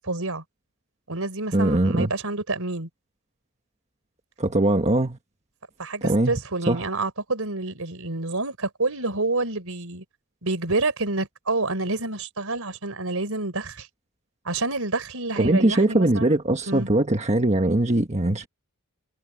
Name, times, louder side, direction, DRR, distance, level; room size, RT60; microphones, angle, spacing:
voice 1, 0.1-0.4 1.1-2.9 5.8-10.0 10.4-13.9 14.5-16.4 16.7-16.9, right 2 dB, 75° right, 3.9 m, -28 dB
voice 2, 1.5-2.1 4.4-5.2 6.0-6.3 6.7-6.9 15.4-18.5, right 1 dB, 30° right, 1.4 m, -21 dB
head